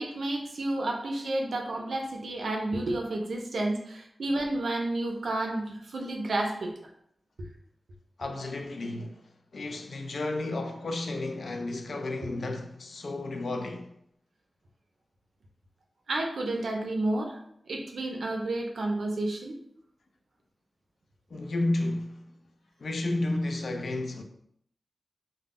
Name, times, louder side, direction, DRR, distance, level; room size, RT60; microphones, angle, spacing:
voice 1, 0.0-6.7 16.1-17.4 17.7-19.6, right 2 dB, 90° right, 0.4 m, -31 dB
voice 2, 8.2-13.9 21.3-22.3 22.8-24.2, left 2 dB, 75° left, 0.3 m, -32 dB
2.0 x 2.0 x 3.5 m
wide cardioid pair, 85°, 0 cm